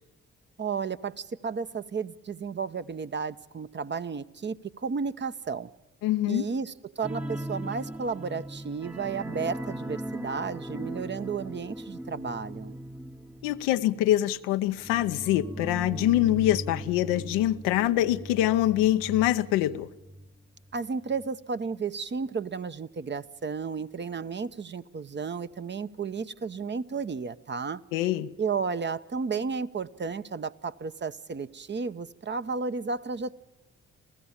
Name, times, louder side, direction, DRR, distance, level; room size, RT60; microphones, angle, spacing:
voice 1, 0.6-5.7 6.3-12.8 20.7-27.8 28.4-33.3, right 5 dB, 35° right, 0.8 m, -33 dB
voice 2, 6.0-6.5 13.4-19.9 27.9-28.3, left 14 dB, 85° left, 0.6 m, -24 dB
sound 1, 7.0-20.3 20.6-20.8 21.2-21.3, right 1 dB, 5° right, 0.8 m, -39 dB
27.5 x 15.5 x 7.3 m
hypercardioid pair, 45°, 31 cm